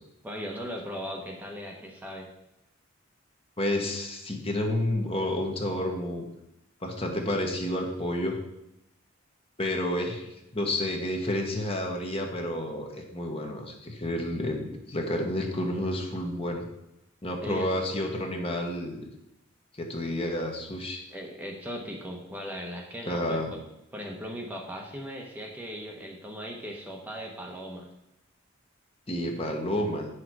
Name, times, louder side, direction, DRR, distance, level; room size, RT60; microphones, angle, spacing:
voice 1, 0.2-2.3 17.4-17.7 21.1-23.4 23.9-27.9, equal, 10° right, 0 dB, 1.0 m, -38 dB
voice 2, 3.6-6.3 6.8-8.4 9.6-16.7 17.2-19.1 19.7-21.1 23.1-23.5 29.1-30.1, left 1 dB, 30° left, 2 dB, 1.3 m, -30 dB
9.1 x 6.3 x 4.7 m, 0.85 s
head